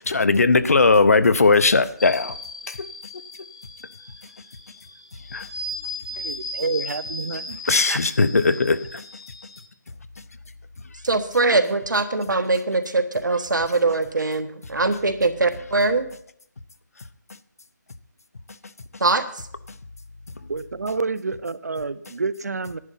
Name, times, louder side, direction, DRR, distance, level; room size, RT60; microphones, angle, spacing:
voice 1, 0.1-2.4 2.7-2.9 5.3-5.5 7.7-9.0, left 3 dB, 55° left, 0.7 m, -18 dB
sound 1, 2.0-9.7, left 1 dB, 20° left, 0.7 m, -37 dB
voice 2, 6.2-7.6 7.9-8.0 20.5-22.8, right 4 dB, 60° right, 0.7 m, -28 dB
voice 3, 11.0-16.1 19.0-19.2, right 3 dB, 90° right, 1.5 m, -22 dB
11.0 x 8.7 x 5.6 m
figure-of-eight pair, 175°, 10 cm